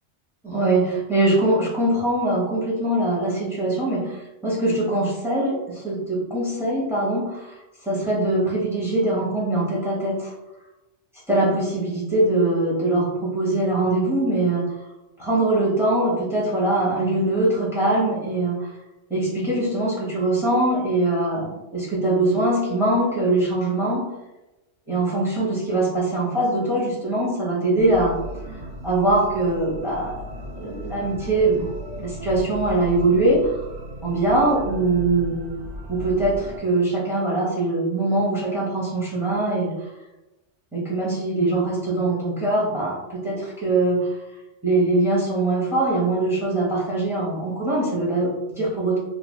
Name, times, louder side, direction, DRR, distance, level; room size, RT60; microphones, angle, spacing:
voice 1, 0.4-7.6 7.8-10.3 11.3-14.7 15.2-18.7 19.1-24.0 24.9-28.2 28.8-31.7 32.0-33.7 34.0-35.5 35.9-39.9 40.7-44.1 44.6-49.0, right 2 dB, 5° right, -6 dB, 0.8 m, -22 dB
sound 1, 27.8-36.6, equal, 55° right, 0.4 m, -36 dB
3.3 x 2.3 x 2.2 m, 1.0 s
omnidirectional pair, 1.2 m